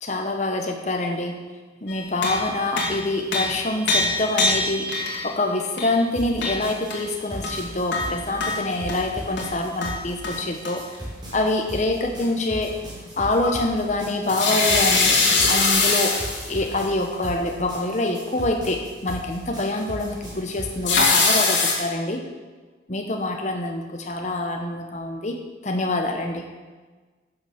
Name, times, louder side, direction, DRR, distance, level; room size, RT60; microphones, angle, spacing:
voice 1, 0.0-1.4 1.8-4.9 5.2-10.8 11.3-12.8 13.2-15.2 15.5-16.2 16.5-22.2 22.9-26.4, left 2 dB, 40° left, 3 dB, 0.9 m, -26 dB
sound 1, 1.9-5.3 5.8-5.9 6.4-7.0 7.4-9.0 9.4-9.5 9.8-10.4 10.6-10.8 13.3-13.6 14.3-16.5 20.8-21.7, left 3 dB, 75° left, 2.4 m, -22 dB
sound 2, 6.1-20.8, right 1 dB, 25° right, 3.9 m, -37 dB
11.0 x 7.1 x 6.5 m, 1.3 s
head